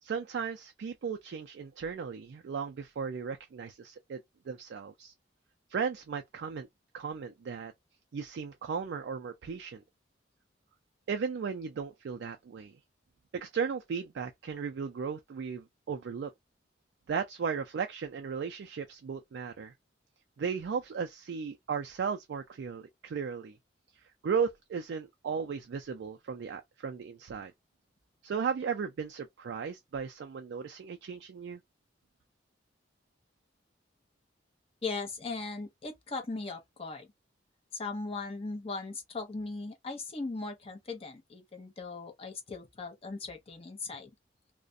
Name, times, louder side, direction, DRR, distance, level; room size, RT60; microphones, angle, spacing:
voice 1, 0.0-4.2 4.5-5.1 5.7-6.7 6.9-7.7 8.1-9.8 11.1-12.8 13.3-16.3 17.1-19.7 20.4-23.6 24.2-27.5 28.2-31.6, right 6 dB, 65° right, 0.3 m, -36 dB
voice 2, 34.8-37.1 37.7-44.1, left 3 dB, 30° left, 0.7 m, -38 dB
2.4 x 2.1 x 2.5 m
head